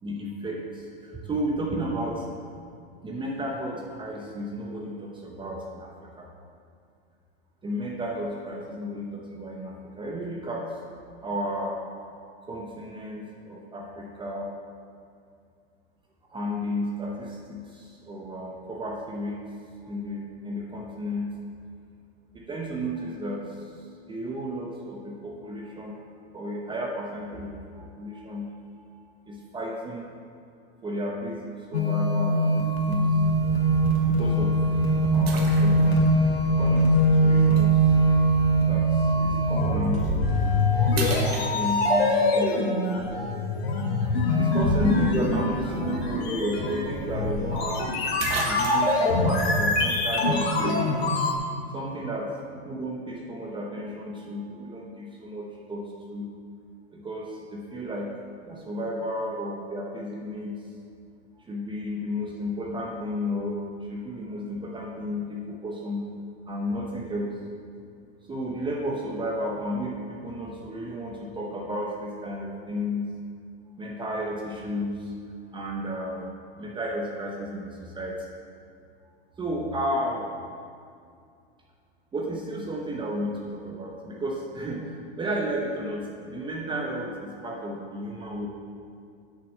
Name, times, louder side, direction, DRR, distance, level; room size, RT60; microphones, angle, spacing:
voice 1, 0.0-2.3 3.0-6.3 7.6-10.7 11.2-11.8 12.4-14.5 16.3-19.4 19.8-21.3 22.3-23.6 24.1-30.0 30.8-33.1 34.1-34.6 35.0-36.1 36.6-37.9 38.7-40.8 41.2-43.1 44.4-47.9 48.5-51.1 51.7-55.8 56.1-56.3 56.9-58.1 58.4-60.6 61.5-63.6 63.9-66.1 66.5-67.3 68.3-73.1 73.8-75.1 75.5-78.2 79.4-80.2 82.1-88.5, equal, 15° right, -1 dB, 1.0 m, -33 dB
sound 1, 31.7-51.4, equal, 80° left, 2.5 m, -23 dB
sound 2, 32.8-33.1 33.7-33.8 35.3-36.1 37.6-37.7 39.8-40.0 40.5-40.6 40.9-42.0 46.1-46.2 46.5-46.6 47.7-47.8 48.2-49.1, right 4 dB, 70° right, 1.5 m, -34 dB
sound 3, 33.1-40.7, left 3 dB, 20° left, 2.1 m, -35 dB
6.8 x 6.0 x 7.4 m, 2.3 s
hypercardioid pair, 125°, 31 cm